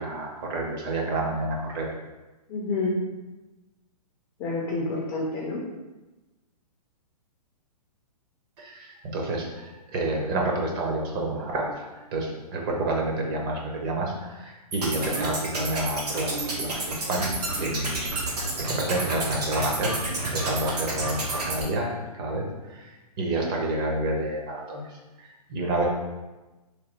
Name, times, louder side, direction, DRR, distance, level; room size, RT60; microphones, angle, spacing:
voice 1, 0.0-1.9 8.6-19.9 20.3-22.9 23.2-24.9 25.2-25.9, right 2 dB, 35° right, -1 dB, 0.7 m, -29 dB
voice 2, 2.5-3.0 4.4-5.6 25.8-25.9, left 2 dB, 15° left, -4 dB, 0.3 m, -28 dB
sound 1, 14.7-21.6, right 2 dB, 80° right, 1.1 m, -30 dB
3.2 x 2.3 x 4.2 m, 1.1 s
hypercardioid pair, 140°, 20 cm